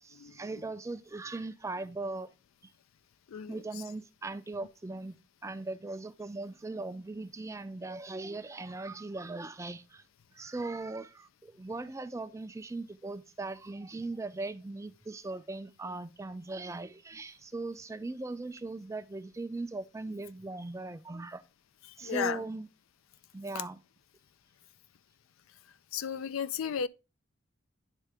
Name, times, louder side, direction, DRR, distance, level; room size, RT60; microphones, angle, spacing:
voice 1, 0.0-2.3 3.5-5.2 5.4-10.0 10.3-21.4 22.0-22.7 23.3-23.8, right 2 dB, 15° right, 0.4 m, -39 dB
voice 2, 3.3-3.6 21.9-22.4 23.5-23.6 25.9-26.9, left 7 dB, 85° left, 0.4 m, -34 dB
10.0 x 3.7 x 3.4 m
head